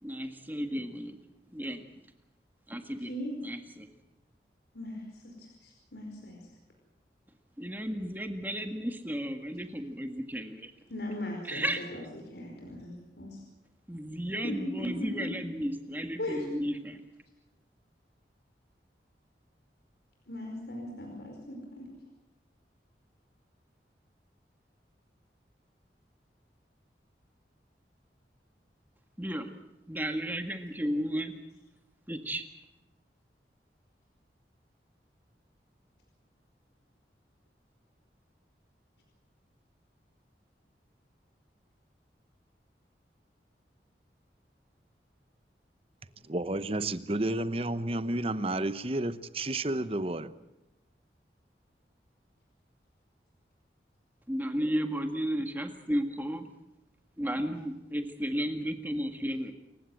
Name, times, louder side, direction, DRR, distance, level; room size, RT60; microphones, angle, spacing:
voice 1, 0.0-1.2 1.5-1.8 2.7-3.1 3.4-3.9 7.6-10.7 11.4-11.8 13.9-17.0 29.2-29.5 29.9-31.3 32.1-32.5 54.3-56.5 57.2-59.5, equal, 10° right, 6 dB, 1.8 m, -33 dB
voice 2, 4.7-6.4 10.9-12.0 12.3-13.4 14.4-15.3 16.2-16.4 20.3-21.9, left 1 dB, 75° left, 1 dB, 4.9 m, -38 dB
voice 3, 46.2-50.3, right 1 dB, 35° right, 14 dB, 0.9 m, -31 dB
28.0 x 16.0 x 7.9 m, 0.94 s
head